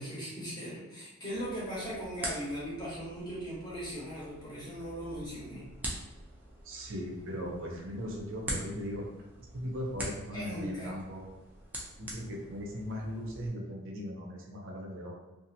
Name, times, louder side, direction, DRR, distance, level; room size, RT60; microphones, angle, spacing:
voice 1, 0.0-5.6 10.3-10.9, equal, 20° left, -8 dB, 0.9 m, -39 dB
sound 1, 1.3-13.5, right 1 dB, 10° right, 0.4 m, -44 dB
voice 2, 6.6-9.1 9.4-11.2 12.0-15.1, equal, 60° right, -1 dB, 0.5 m, -38 dB
2.6 x 2.4 x 2.7 m, 1.1 s
head